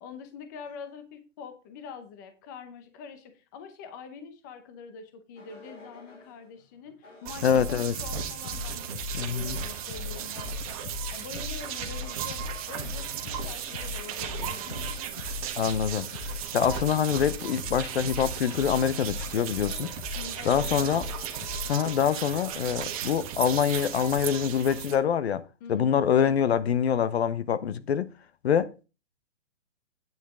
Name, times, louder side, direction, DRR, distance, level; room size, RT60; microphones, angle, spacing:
voice 1, 0.0-12.4 12.7-15.0 20.2-20.9 25.6-26.0, left 6 dB, 15° left, 0.6 m, -45 dB
sound 1, 5.4-6.4 7.0-21.7 22.4-22.8, left 5 dB, 75° left, 5.6 m, -39 dB
sound 2, 7.2-24.9, right 9 dB, 30° right, 1.3 m, -36 dB
voice 2, 7.4-7.9 9.1-9.6 15.6-19.9 20.4-21.0 21.7-25.4 25.7-28.1 28.4-28.8, left 8 dB, 60° left, 0.8 m, -25 dB
sound 3, 19.0-19.2 19.5-20.6 21.0-22.2 22.8-22.9 23.2-24.4, right 10 dB, 90° right, 0.7 m, -41 dB
9.3 x 8.5 x 3.6 m
hypercardioid pair, 165°, 37 cm